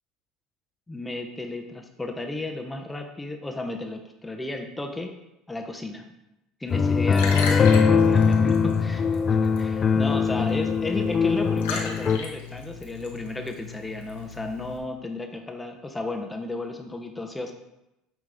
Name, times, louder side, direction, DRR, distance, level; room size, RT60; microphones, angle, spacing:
voice 1, 0.9-5.1 5.5-6.1 6.6-9.0 9.3-17.5, left 2 dB, 10° left, 4 dB, 0.8 m, -34 dB
Liquid, 6.7-14.8, left 5 dB, 80° left, 1.0 m, -37 dB
sound 1, 6.7-12.2, left 5 dB, 35° left, 0.3 m, -21 dB
8.7 x 3.1 x 3.6 m, 0.90 s
hypercardioid pair, 75°, 0 cm